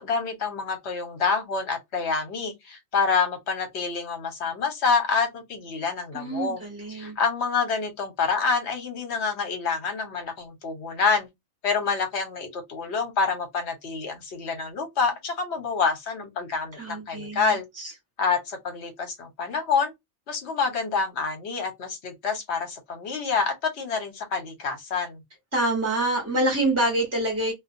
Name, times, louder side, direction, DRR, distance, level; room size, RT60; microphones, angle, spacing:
voice 1, 0.0-6.6 6.9-11.3 11.6-17.7 18.2-19.9 20.3-25.2, left 5 dB, 60° left, 1.1 m, -27 dB
voice 2, 6.1-7.1 16.8-17.4 17.8-17.9 25.5-27.5, right 1 dB, 15° right, 0.7 m, -26 dB
2.4 x 2.3 x 2.6 m
omnidirectional pair, 1.4 m